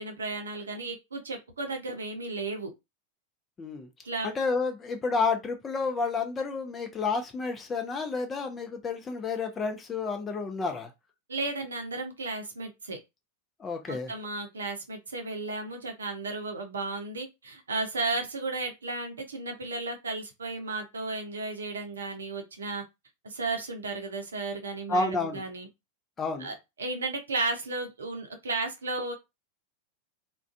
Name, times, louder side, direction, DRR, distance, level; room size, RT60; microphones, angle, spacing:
voice 1, 0.0-2.7 4.0-4.3 11.3-13.0 13.9-22.8 23.2-25.7 26.4-29.1, right 3 dB, 70° right, 0.6 m, -34 dB
voice 2, 3.6-3.9 4.2-10.9 13.6-14.1 24.9-25.4 26.2-26.5, left 4 dB, 20° left, 0.5 m, -30 dB
2.4 x 2.2 x 2.4 m
figure-of-eight pair, 90°, 0 cm